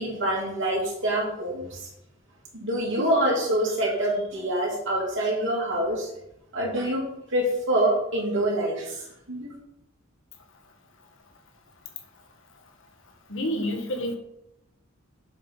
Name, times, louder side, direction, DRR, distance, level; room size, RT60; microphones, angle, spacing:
voice 1, 0.0-1.8 2.5-6.1 6.5-7.0 7.3-9.5, right 1 dB, 60° right, -2 dB, 2.9 m, -26 dB
voice 2, 13.3-14.2, equal, 65° left, 4 dB, 1.4 m, -28 dB
7.8 x 5.5 x 5.5 m, 0.81 s
head